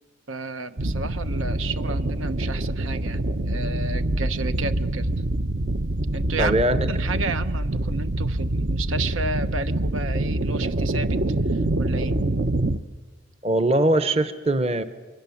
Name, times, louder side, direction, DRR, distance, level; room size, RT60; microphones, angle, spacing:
voice 1, 0.3-3.2 3.5-5.1 6.1-6.5 6.9-11.2 11.5-12.2, right 3 dB, 80° right, 11 dB, 1.0 m, -32 dB
sound 1, 0.8-12.8, right 1 dB, 50° right, 0.8 m, -25 dB
voice 2, 6.4-6.8 13.4-14.8, right 1 dB, 30° right, 11 dB, 0.9 m, -21 dB
27.5 x 23.0 x 7.2 m, 1.3 s
head